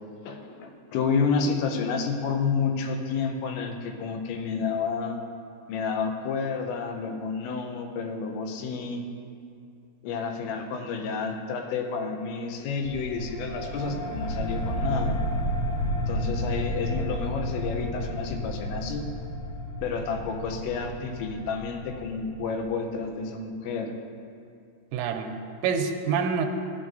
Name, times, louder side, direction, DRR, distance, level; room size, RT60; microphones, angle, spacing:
voice 1, 0.2-5.2 5.7-9.0 10.0-15.2 16.1-19.1 19.8-23.9, left 5 dB, 90° left, 4 dB, 3.0 m, -30 dB
sound 1, 12.8-23.0, equal, 65° left, 2.3 m, -32 dB
voice 2, 24.9-26.5, right 6 dB, 85° right, 5 dB, 3.0 m, -27 dB
15.0 x 10.5 x 2.6 m, 2.4 s
omnidirectional pair, 5.3 m